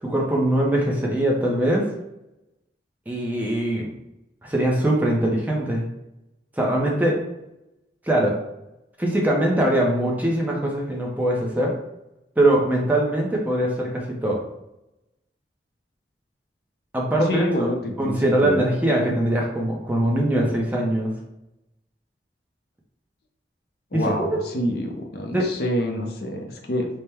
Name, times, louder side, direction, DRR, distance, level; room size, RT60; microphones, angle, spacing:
voice 1, 0.0-1.9 3.1-3.9 4.4-5.9 6.6-7.2 8.0-8.4 9.0-11.7 12.4-14.4 16.9-17.4 18.0-21.1 23.9-24.3 25.3-25.5, right 1 dB, 10° right, -2 dB, 0.6 m, -22 dB
voice 2, 17.3-18.7 23.9-26.9, equal, 60° left, 2 dB, 0.6 m, -27 dB
3.4 x 2.1 x 4.3 m, 0.89 s
head